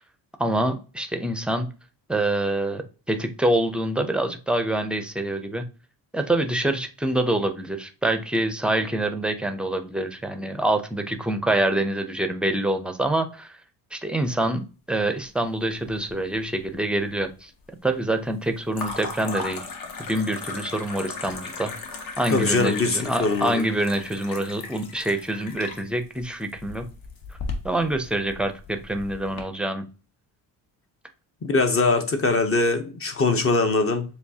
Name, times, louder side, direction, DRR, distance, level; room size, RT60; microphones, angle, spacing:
voice 1, 0.4-1.7 2.1-5.7 6.1-13.5 13.9-17.5 17.8-19.7 20.0-21.7 22.2-26.9 27.6-29.9, right 1 dB, 5° right, 0.5 m, -26 dB
sound 1, 15.6-16.3 16.6-17.3 18.7-29.4, left 4 dB, 60° left, 1.1 m, -37 dB
voice 2, 22.3-23.7 31.4-34.0, left 3 dB, 35° left, 0.7 m, -22 dB
6.9 x 2.4 x 2.7 m
cardioid pair, 110°, 40 cm